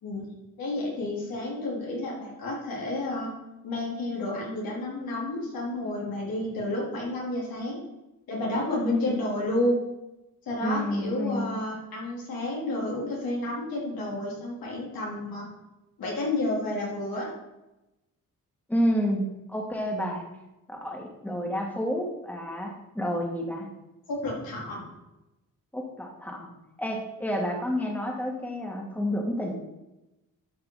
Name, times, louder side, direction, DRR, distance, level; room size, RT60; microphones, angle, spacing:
voice 1, 0.6-3.3 3.6-7.8 8.3-9.8 10.5-15.5 16.0-17.3 24.1-24.8, left 1 dB, 90° left, -4 dB, 3.6 m, -30 dB
voice 2, 10.6-11.5 18.7-20.2 20.7-23.7 25.7-26.5 26.8-29.5, equal, 5° left, 0 dB, 2.0 m, -30 dB
11.5 x 5.6 x 4.0 m, 0.97 s
cardioid pair, 80°, 34 cm